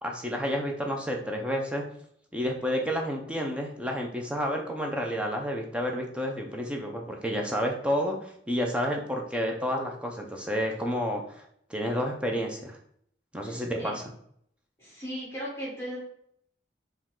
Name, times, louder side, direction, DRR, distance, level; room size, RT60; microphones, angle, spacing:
voice 1, 0.0-1.9 2.3-11.4 11.7-12.8 13.3-14.0, equal, 5° right, 1 dB, 0.6 m, -30 dB
voice 2, 13.4-13.9 14.8-16.0, equal, 15° left, -6 dB, 1.2 m, -37 dB
5.0 x 2.5 x 3.6 m, 0.68 s
head